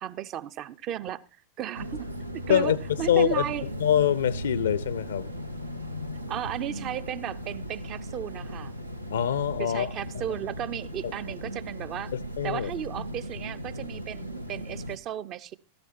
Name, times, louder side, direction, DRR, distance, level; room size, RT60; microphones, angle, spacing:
voice 1, 0.0-1.2 1.6-2.7 3.0-3.7 6.3-8.7 9.6-12.1 12.4-15.5, right 11 dB, 35° right, 0.6 m, -34 dB
sound 1, 1.7-15.0, equal, 85° right, 0.9 m, -37 dB
voice 2, 3.1-3.4 3.8-5.3 9.1-9.9 11.0-11.1 12.1-12.7, left 10 dB, 65° left, 0.5 m, -24 dB
15.5 x 14.0 x 2.9 m
figure-of-eight pair, 90°, 0 cm